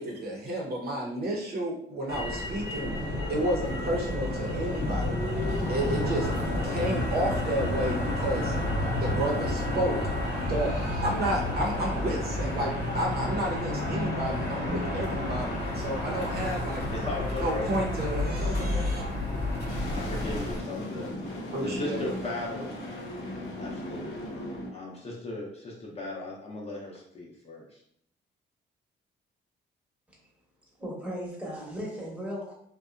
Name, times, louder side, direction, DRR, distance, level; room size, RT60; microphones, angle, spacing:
voice 1, 0.0-2.9 3.3-5.2 5.7-6.3 6.6-8.5 9.0-16.8 17.4-19.0 21.5-22.1, right 1 dB, 50° right, -1 dB, 0.7 m, -31 dB
Motor vehicle (road), 2.1-20.6, left 1 dB, 55° left, 0.9 m, -31 dB
sound 1, 2.8-20.4, left 1 dB, 90° right, 0.7 m, -36 dB
voice 2, 16.9-17.7 19.9-22.8 23.6-27.8, left 2 dB, 30° left, -3 dB, 0.7 m, -37 dB
sound 2, 19.7-24.7, left 1 dB, 90° left, 0.8 m, -37 dB
voice 3, 30.8-32.5, equal, 5° right, -4 dB, 1.0 m, -36 dB
2.6 x 2.2 x 2.5 m, 0.67 s
cardioid pair, 90°, 20 cm